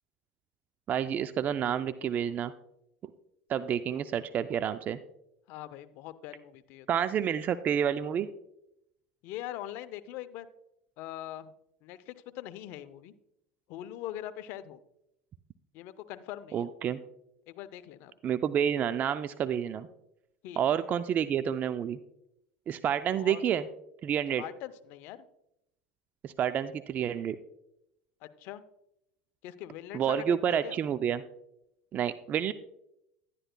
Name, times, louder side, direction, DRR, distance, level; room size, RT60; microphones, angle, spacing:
voice 1, 0.9-2.5 3.5-5.0 6.9-8.3 16.5-17.0 18.2-19.9 20.6-22.0 22.7-23.7 24.0-24.4 26.2-27.4 29.9-31.2 31.9-32.5, right 9 dB, 40° right, 12 dB, 0.4 m, -29 dB
voice 2, 5.5-6.9 9.2-10.5 11.0-11.5 11.8-13.1 13.7-14.8 15.7-16.7 17.5-18.1 20.4-20.6 23.2-23.4 24.4-25.2 28.2-28.6 29.4-30.8, left 13 dB, 60° left, 13 dB, 0.6 m, -42 dB
11.0 x 9.9 x 2.2 m, 0.82 s
supercardioid pair, 95°, 4 cm